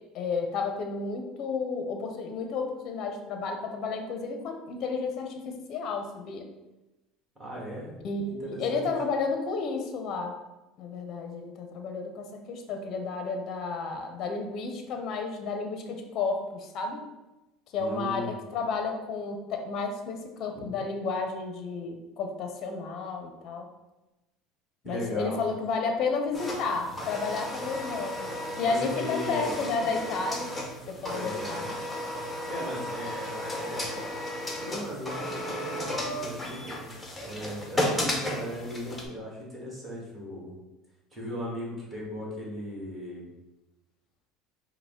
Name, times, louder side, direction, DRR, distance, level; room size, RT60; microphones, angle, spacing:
voice 1, 0.1-6.5 8.0-10.4 10.8-17.0 17.7-23.7 24.8-30.5 30.9-31.7, left 4 dB, 45° left, 4 dB, 0.5 m, -32 dB
voice 2, 7.4-7.9 8.3-8.9 17.8-18.3 20.5-20.7 24.8-25.4 28.6-29.6 31.1-31.7 32.5-34.1 34.6-36.9 37.2-40.5 41.1-43.3, equal, 15° right, -6 dB, 1.3 m, -37 dB
sound 1, 26.3-39.1, left 1 dB, 10° left, 0.6 m, -34 dB
4.7 x 2.0 x 3.6 m, 1.0 s
cardioid pair, 140°, 0 cm